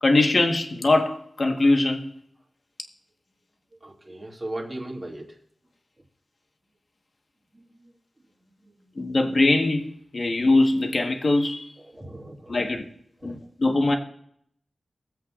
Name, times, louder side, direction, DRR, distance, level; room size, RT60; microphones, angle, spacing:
voice 1, 0.0-2.1 9.0-9.8 10.1-11.7 12.5-12.8 13.2-13.3 13.6-14.0, left 2 dB, 45° left, 1.3 m, -21 dB
voice 2, 3.8-5.4 7.5-7.9 8.4-9.2 11.8-12.8 13.2-13.4, right 1 dB, 30° right, 2.2 m, -39 dB
23.0 x 7.8 x 2.4 m
wide cardioid pair, 105°, 0 cm